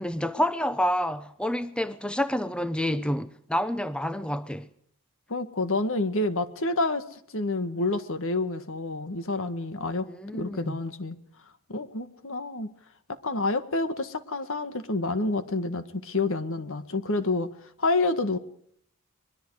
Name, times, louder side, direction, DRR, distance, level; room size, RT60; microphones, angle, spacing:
voice 1, 0.0-4.7 10.0-10.8, left 1 dB, 5° left, 0.7 m, -28 dB
voice 2, 5.3-10.1 10.3-11.2 11.7-12.7 13.1-17.5 17.8-18.4, left 2 dB, 65° left, 1.8 m, -28 dB
24.5 x 21.5 x 4.9 m
head